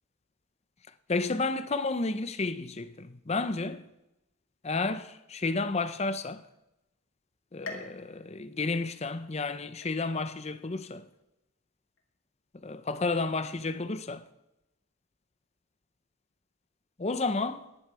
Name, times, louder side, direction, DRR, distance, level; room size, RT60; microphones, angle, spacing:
voice 1, 1.1-3.8 4.6-6.4 7.5-11.0 12.6-14.2 17.0-17.6, left 3 dB, 30° left, 0.6 m, -31 dB
sound 1, 7.6-9.4 9.8-10.4 10.9-11.0 12.0-12.1, left 3 dB, 65° left, 2.1 m, -46 dB
14.5 x 10.5 x 4.8 m
head